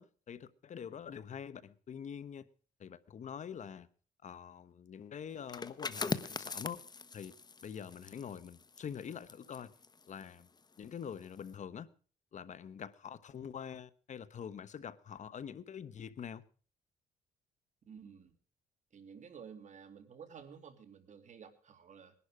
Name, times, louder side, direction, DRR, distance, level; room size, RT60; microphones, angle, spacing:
voice 1, 0.0-2.5 2.8-3.9 4.2-6.8 7.1-7.3 7.6-9.7 10.0-10.5 10.8-11.9 12.3-16.4, left 8 dB, 50° left, 1.0 m, -45 dB
sound 1, 5.4-10.9 11.2-11.5, left 4 dB, 25° left, 0.9 m, -42 dB
voice 2, 17.9-18.3 18.9-22.1, right 7 dB, 50° right, 2.7 m, -52 dB
20.5 x 11.5 x 4.9 m
cardioid pair, 90°, 16 cm